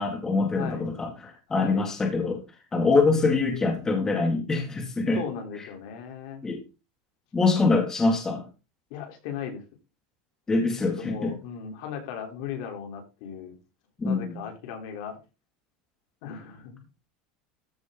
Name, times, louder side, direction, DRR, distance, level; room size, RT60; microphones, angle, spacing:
voice 1, 0.0-2.4 2.7-5.2 6.4-6.6 7.3-8.4 10.5-11.3 14.0-14.4, left 3 dB, 15° left, 3 dB, 2.3 m, -24 dB
voice 2, 0.5-0.9 1.5-1.9 2.7-3.4 5.2-6.4 8.9-9.6 10.8-13.5 14.0-15.2 16.2-16.8, left 7 dB, 70° left, 3 dB, 3.7 m, -37 dB
14.0 x 6.1 x 3.8 m, 0.29 s
supercardioid pair, 145°, 4 cm